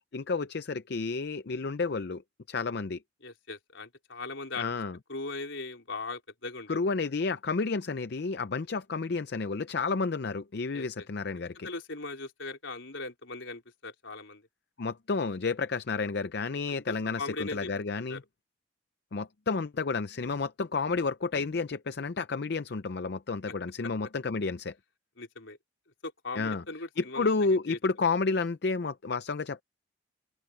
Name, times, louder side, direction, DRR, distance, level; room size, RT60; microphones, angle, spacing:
voice 1, 0.1-2.2 2.5-3.0 4.6-5.0 6.7-11.7 14.8-18.2 19.1-24.7 26.4-26.6 27.0-29.6, left 4 dB, 55° left, 0.5 m, -31 dB
voice 2, 3.2-4.7 5.1-6.8 10.7-10.9 11.6-14.4 16.7-17.7 18.0-18.2 23.5-23.6 25.2-25.6 26.0-27.3 27.7-27.8, left 3 dB, 70° left, 4.0 m, -39 dB
open air
head